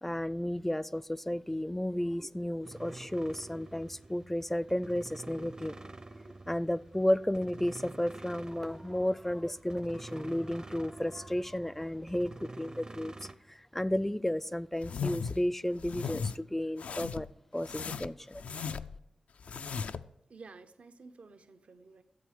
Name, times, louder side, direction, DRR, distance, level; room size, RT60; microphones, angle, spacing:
voice 1, 0.0-5.9 6.5-13.1 13.5-17.3 17.5-18.4, left 1 dB, 10° left, 0.4 m, -33 dB
sound 1, 2.6-13.3, right 2 dB, 35° right, 0.6 m, -48 dB
sound 2, 14.8-15.4 15.8-16.4 16.8-17.3 17.6-19.0 19.4-20.1, left 6 dB, 80° left, 0.3 m, -37 dB
voice 2, 20.3-22.0, right 4 dB, 70° right, 0.7 m, -52 dB
11.0 x 7.7 x 5.0 m
cardioid pair, 40°, 2 cm